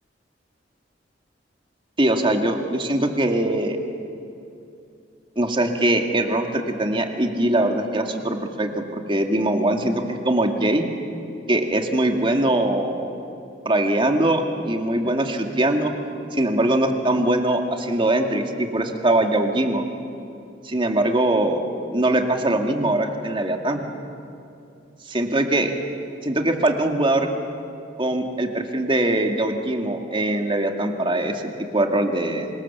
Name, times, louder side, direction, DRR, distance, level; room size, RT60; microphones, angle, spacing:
voice 1, 2.0-3.8 5.4-10.9 11.5-13.1 13.7-15.9 16.3-19.8 20.6-21.6 21.9-23.8 25.1-25.7 26.2-27.3 28.0-32.5, right 1 dB, 30° right, 4 dB, 2.2 m, -22 dB
27.5 x 25.5 x 7.3 m, 2.6 s
head